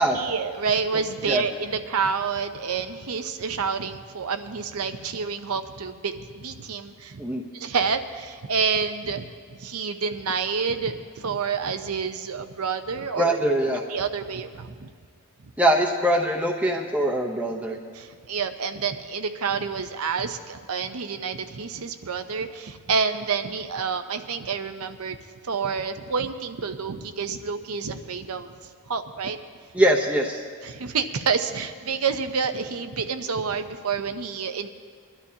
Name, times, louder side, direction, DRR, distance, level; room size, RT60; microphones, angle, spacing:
voice 1, 0.0-7.2 7.5-13.4 13.9-14.9 17.9-25.2 25.4-29.4 30.6-34.7, right 5 dB, 85° right, 9 dB, 0.8 m, -28 dB
voice 2, 13.2-13.8 15.6-17.8 29.7-30.4, right 1 dB, 5° right, 0 dB, 0.8 m, -22 dB
22.5 x 11.5 x 2.8 m, 2.1 s
head